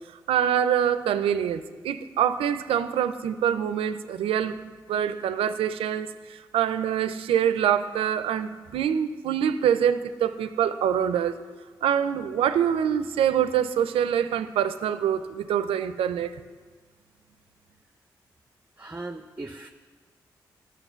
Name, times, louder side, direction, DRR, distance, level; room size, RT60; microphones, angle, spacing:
voice 1, 0.3-4.6 4.9-11.3 11.8-16.3, right 9 dB, 80° right, 12 dB, 0.5 m, -25 dB
voice 2, 18.8-19.7, right 2 dB, 20° right, 7 dB, 0.6 m, -38 dB
10.0 x 6.2 x 6.9 m, 1.5 s
supercardioid pair, 40°, 9 cm